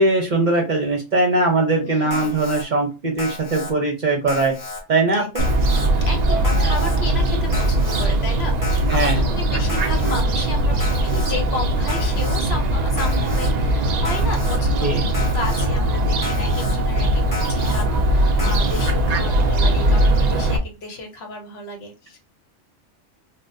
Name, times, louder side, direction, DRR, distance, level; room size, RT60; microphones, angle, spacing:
voice 1, 0.0-4.5 4.9-5.4 8.9-9.2 14.8-15.0, right 2 dB, 45° right, 3 dB, 0.7 m, -20 dB
voice 2, 1.8-2.4 5.1-5.6 6.0-22.2, left 2 dB, 60° left, 3 dB, 1.0 m, -33 dB
Alarm, 2.1-2.6 3.2-3.7 4.3-4.8 5.3-5.9 6.4-7.0 7.5-8.1 8.6-9.1 9.7-10.2 10.8-11.3 11.9-12.4 13.0-13.5 14.0-14.6 15.1-15.7 16.2-16.7 17.3-17.8 18.4-18.9, left 2 dB, 25° left, 0.4 m, -33 dB
Fowl, 5.4-20.6, right 1 dB, 80° right, 0.3 m, -20 dB
3.7 x 2.1 x 2.6 m, 0.28 s
omnidirectional pair, 1.3 m